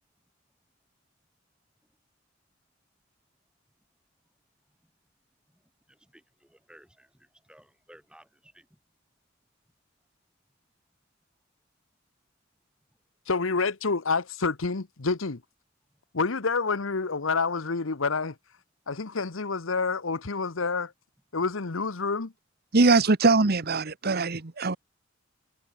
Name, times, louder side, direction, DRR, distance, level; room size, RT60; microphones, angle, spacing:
voice 1, 5.9-8.7, right 1 dB, 5° right, 3.2 m, -56 dB
voice 2, 13.3-15.4 16.1-18.3 18.9-20.9 21.3-22.3, left 4 dB, 85° left, 1.1 m, -28 dB
voice 3, 22.7-24.8, right 3 dB, 55° right, 1.1 m, -22 dB
head